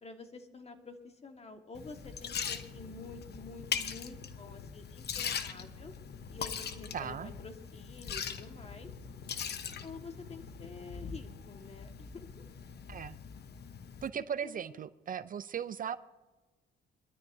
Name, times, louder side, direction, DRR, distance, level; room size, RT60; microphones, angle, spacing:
voice 1, 0.0-5.9 6.3-8.9 9.8-12.5 14.1-14.8, left 3 dB, 30° left, 5 dB, 1.7 m, -49 dB
Liquid, 1.7-14.1, left 7 dB, 55° left, 1.0 m, -41 dB
voice 2, 6.9-7.3 12.9-13.2 14.0-16.0, right 8 dB, 45° right, 15 dB, 0.5 m, -37 dB
22.5 x 13.0 x 2.8 m, 1.2 s
cardioid pair, 90°, 20 cm